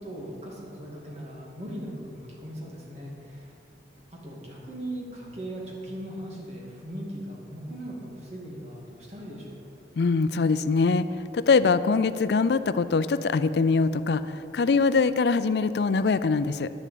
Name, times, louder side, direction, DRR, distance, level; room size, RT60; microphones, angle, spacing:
voice 1, 0.0-3.6 4.2-9.6, right 1 dB, 35° right, -3 dB, 2.4 m, -39 dB
voice 2, 10.0-16.7, left 4 dB, 65° left, 14 dB, 0.4 m, -23 dB
11.0 x 7.1 x 8.5 m, 2.7 s
head